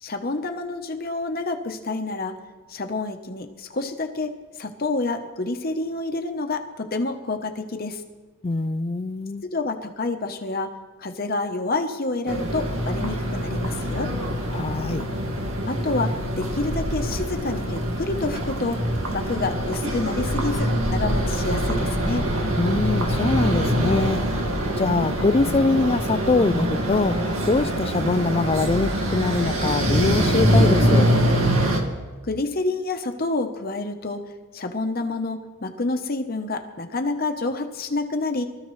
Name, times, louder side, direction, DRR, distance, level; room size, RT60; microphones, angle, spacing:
voice 1, 0.0-2.3 2.7-4.3 4.6-8.0 9.4-10.7 11.0-14.1 15.7-18.8 19.1-22.3 32.2-34.2 34.5-38.4, left 3 dB, 45° left, 0.9 m, -28 dB
voice 2, 8.4-9.4 14.5-15.0 22.6-24.2 24.8-27.2 27.5-31.1, left 3 dB, 25° left, 0.4 m, -23 dB
sound 1, 12.3-31.8, equal, 75° right, 2.0 m, -24 dB
24.5 x 13.5 x 3.2 m
head